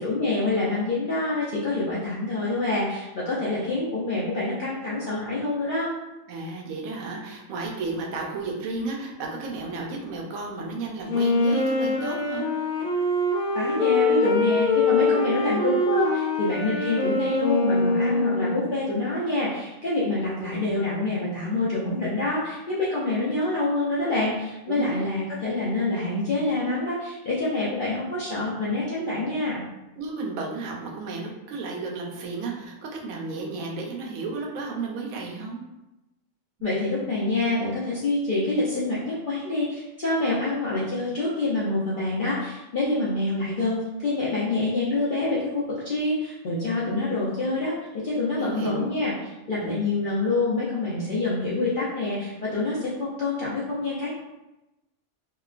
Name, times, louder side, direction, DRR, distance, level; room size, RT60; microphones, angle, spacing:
voice 1, 0.0-5.9 13.5-29.6 36.6-54.1, left 2 dB, 65° left, -8 dB, 0.5 m, -26 dB
voice 2, 6.3-12.5 24.7-25.0 30.0-35.6 48.4-48.9 49.6-49.8, right 3 dB, 85° right, 0 dB, 1.0 m, -33 dB
Wind instrument woodwind instrument, 11.1-18.8, left 2 dB, 85° left, 1.0 m, -24 dB
2.9 x 2.2 x 2.3 m, 0.99 s
omnidirectional pair, 1.4 m